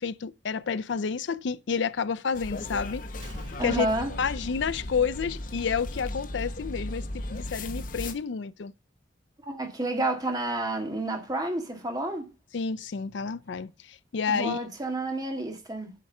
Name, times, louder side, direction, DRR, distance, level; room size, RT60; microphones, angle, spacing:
voice 1, 0.0-3.0 3.6-3.9 4.2-8.7 12.5-14.6, left 6 dB, 65° left, 0.4 m, -30 dB
sound 1, 2.3-8.1, left 1 dB, 45° left, 0.9 m, -36 dB
Explosion, 3.2-5.8 6.1-6.2, right 1 dB, 75° right, 3.2 m, -48 dB
voice 2, 3.6-4.1 9.4-12.3 14.3-15.9, right 1 dB, 20° right, 1.7 m, -30 dB
8.4 x 4.8 x 6.6 m
head